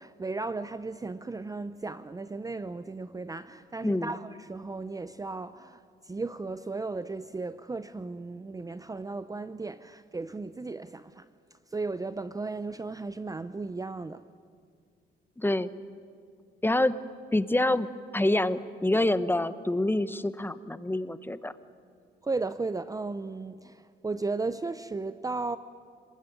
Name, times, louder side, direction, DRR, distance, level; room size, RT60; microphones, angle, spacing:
voice 1, 0.0-11.3 11.7-14.2 22.2-25.6, right 3 dB, 15° right, 0.6 m, -35 dB
voice 2, 3.8-4.1 15.4-15.7 16.6-16.9 17.3-17.9 18.1-21.5, left 1 dB, 10° left, 1.0 m, -26 dB
27.0 x 20.5 x 9.4 m
cardioid pair, 90°, 20 cm